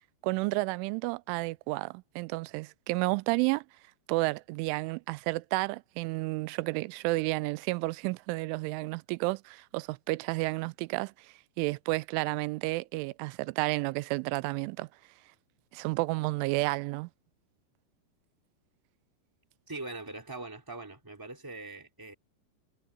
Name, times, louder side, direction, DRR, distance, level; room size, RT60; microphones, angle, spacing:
voice 1, 0.2-3.7 4.1-11.1 11.6-14.9 15.7-17.1, right 23 dB, 85° right, 3.0 m, -31 dB
voice 2, 19.7-22.1, right 2 dB, 5° right, 2.5 m, -42 dB
omnidirectional pair, 5.5 m